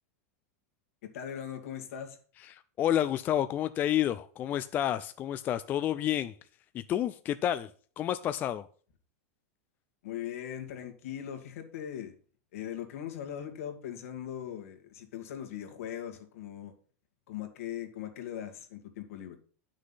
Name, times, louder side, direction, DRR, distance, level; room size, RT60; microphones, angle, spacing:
voice 1, 1.0-2.2 10.0-12.1 12.5-16.7 17.3-19.4, left 10 dB, 75° left, 2.3 m, -40 dB
voice 2, 2.4-6.3 6.7-7.7 8.0-8.7, left 11 dB, 25° left, 0.4 m, -30 dB
9.7 x 6.4 x 5.6 m
supercardioid pair, 150°, 8 cm